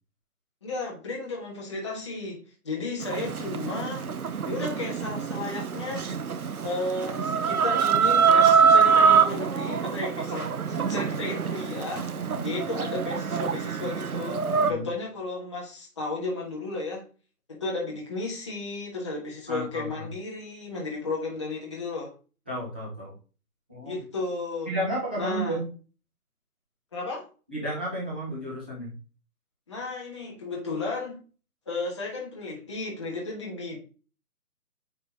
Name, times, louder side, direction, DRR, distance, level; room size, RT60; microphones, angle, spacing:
voice 1, 0.6-4.1 4.4-6.1 6.6-12.1 12.4-17.0 17.5-22.1 23.8-24.7 25.2-25.6 26.9-27.2 29.7-31.2 31.7-33.8, left 3 dB, 20° left, -2 dB, 1.2 m, -33 dB
Chicken rooster, 3.0-14.7, right 6 dB, 65° right, 0.9 m, -24 dB
voice 2, 19.5-20.1 22.5-23.1 23.7-24.0 24.7-25.7 27.5-28.9, right 1 dB, 5° right, -9 dB, 1.0 m, -32 dB
9.3 x 3.9 x 3.5 m, 0.35 s
hypercardioid pair, 170°, 47 cm